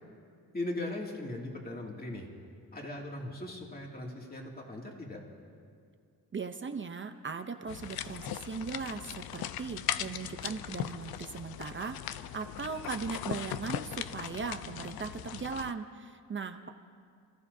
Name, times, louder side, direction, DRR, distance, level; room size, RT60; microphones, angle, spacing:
voice 1, 0.5-2.3 2.7-5.2, left 1 dB, 25° left, -1 dB, 2.5 m, -39 dB
voice 2, 6.3-16.7, right 5 dB, 35° right, 6 dB, 0.7 m, -38 dB
sound 1, 7.7-15.7, left 11 dB, 80° left, 0.6 m, -39 dB
29.0 x 14.5 x 2.7 m, 2.3 s
cardioid pair, 105°, 36 cm